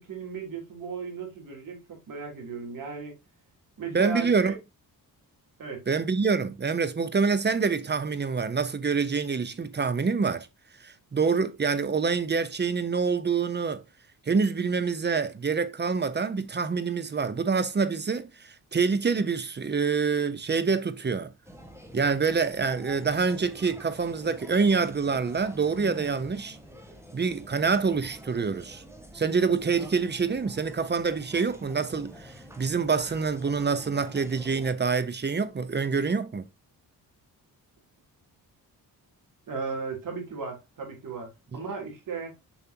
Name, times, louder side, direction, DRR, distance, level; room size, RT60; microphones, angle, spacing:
voice 1, 0.0-3.2 3.8-4.6 5.6-5.8 39.5-42.3, right 5 dB, 60° right, 3.6 m, -36 dB
voice 2, 3.9-4.5 5.9-10.5 10.8-13.8 14.3-21.3 21.9-26.6 27.1-28.8 29.1-36.4, right 5 dB, 30° right, 0.9 m, -26 dB
sound 1, 21.4-34.7, right 1 dB, 5° right, 1.5 m, -47 dB
7.2 x 5.4 x 2.9 m
cardioid pair, 105°, 37 cm